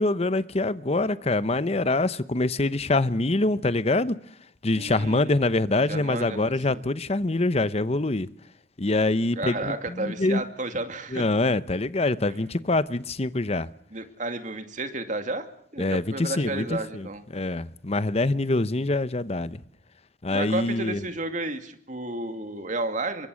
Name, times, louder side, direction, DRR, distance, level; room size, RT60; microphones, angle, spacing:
voice 1, 0.0-4.2 4.6-8.3 8.8-10.4 11.1-13.7 15.8-16.6 16.9-17.1 17.3-19.6 20.2-21.0, left 2 dB, 35° left, 0.9 m, -25 dB
voice 2, 4.8-5.3 5.9-6.8 9.4-11.3 13.9-15.5 15.7-17.2 20.3-23.3, right 2 dB, 45° right, 2.5 m, -32 dB
26.5 x 23.5 x 6.4 m
head